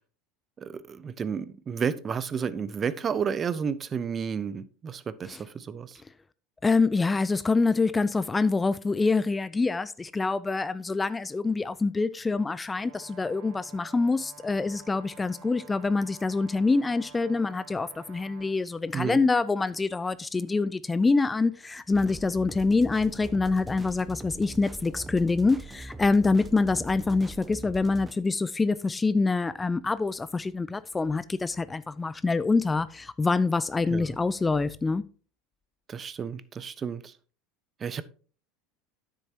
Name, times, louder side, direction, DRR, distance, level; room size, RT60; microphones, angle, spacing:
voice 1, 0.6-6.0 18.9-19.2 33.9-34.2 35.9-37.1 37.8-38.0, right 7 dB, 30° right, 0.6 m, -31 dB
voice 2, 6.6-35.0, left 3 dB, 15° left, 0.4 m, -26 dB
Brass instrument, 12.7-18.6, right 6 dB, 65° right, 1.5 m, -51 dB
sound 1, 21.9-28.1, right 2 dB, 15° right, 1.1 m, -42 dB
9.7 x 7.5 x 2.8 m
hypercardioid pair, 80°, 0 cm